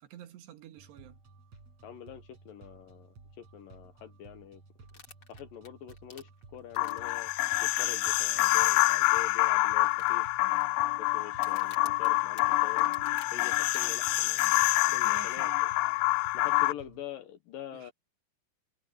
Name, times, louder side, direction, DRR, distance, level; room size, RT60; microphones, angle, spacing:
voice 1, 0.0-1.2 14.9-15.7 17.7-17.9, right 11 dB, 80° right, 3.7 m, -49 dB
sound 1, 0.8-17.0, right 3 dB, 40° right, 7.2 m, -55 dB
voice 2, 1.8-4.6 5.3-7.3 7.6-10.3 10.9-12.9 13.3-14.4 14.9-15.7 16.3-17.9, left 10 dB, 70° left, 2.4 m, -45 dB
sound 2, 4.9-7.2 7.8-8.2 8.5-8.6 9.1-9.2 9.8-10.6 11.3-13.9 14.4-14.6, left 4 dB, 35° left, 3.5 m, -51 dB
sound 3, 6.8-16.7, left 21 dB, 85° left, 2.2 m, -27 dB
omnidirectional pair, 4.9 m